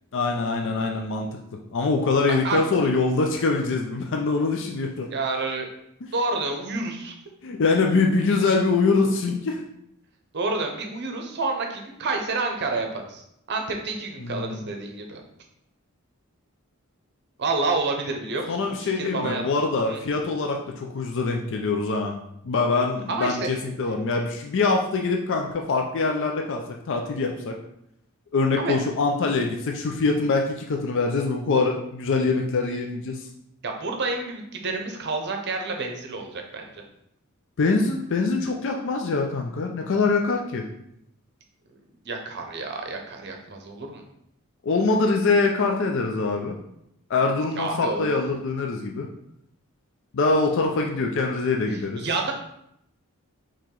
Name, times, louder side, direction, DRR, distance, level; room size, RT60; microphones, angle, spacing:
voice 1, 0.1-1.3 1.7-5.1 7.4-9.6 14.2-14.6 18.5-22.2 22.4-26.6 26.9-27.5 28.3-33.2 37.6-40.6 44.6-46.6 47.1-49.1 50.1-52.1, left 3 dB, 60° left, 2 dB, 0.4 m, -24 dB
voice 2, 2.3-2.6 5.1-5.7 6.1-7.1 10.3-13.2 13.5-15.2 17.4-19.4 19.9-20.0 23.1-23.5 28.6-28.8 33.6-36.8 42.0-44.0 47.6-48.1 51.7-52.3, right 3 dB, 50° right, 3 dB, 0.7 m, -29 dB
4.6 x 3.0 x 3.7 m, 0.77 s
head